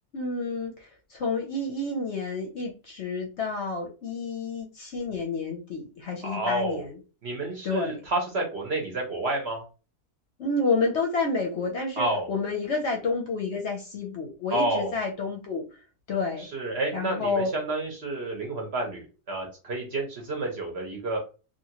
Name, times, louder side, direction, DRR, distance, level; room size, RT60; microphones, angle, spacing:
voice 1, 0.1-7.0 7.6-8.0 10.4-15.6 16.1-16.5 16.9-17.5, left 3 dB, 60° left, 1 dB, 0.8 m, -29 dB
voice 2, 6.2-6.8 7.2-9.6 12.0-12.3 14.5-14.9 16.5-21.2, right 2 dB, 50° right, 1 dB, 0.9 m, -29 dB
2.9 x 2.4 x 2.8 m, 0.32 s
omnidirectional pair, 1.6 m